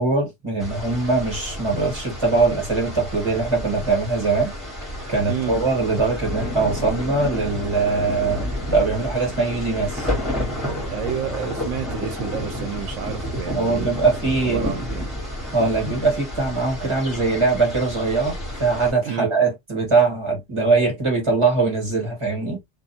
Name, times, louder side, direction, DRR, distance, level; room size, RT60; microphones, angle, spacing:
voice 1, 0.0-4.5 5.1-10.1 13.5-14.8 15.5-18.3 18.6-22.6, right 3 dB, 25° right, 1.5 m, -22 dB
sound 1, 0.6-18.9, equal, ahead, 1.3 m, -30 dB
voice 2, 5.3-5.6 10.9-13.9 14.4-15.1 19.0-19.4, right 8 dB, 80° right, 1.0 m, -30 dB
2.5 x 2.4 x 2.6 m
omnidirectional pair, 1.3 m